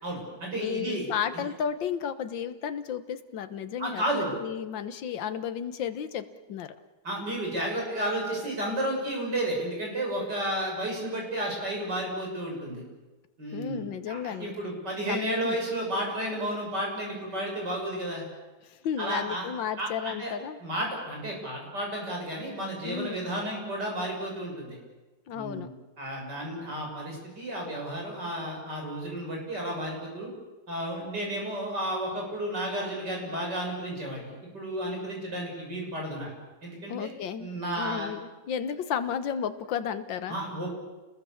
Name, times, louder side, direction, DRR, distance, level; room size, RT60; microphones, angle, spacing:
voice 1, 0.0-1.4 3.8-4.4 7.0-12.8 13.4-18.2 19.0-19.5 19.8-20.3 20.6-24.8 25.3-25.7 26.0-30.3 30.7-36.3 36.6-37.1 37.4-38.1 40.3-40.7, right 1 dB, 55° right, -1 dB, 7.5 m, -32 dB
voice 2, 0.5-6.8 13.5-14.5 15.1-15.2 15.4-15.6 18.6-20.6 22.8-23.3 25.3-25.7 36.9-37.5 37.7-40.4, left 8 dB, 65° left, 10 dB, 1.8 m, -33 dB
29.0 x 20.5 x 7.2 m, 1.2 s
omnidirectional pair, 2.2 m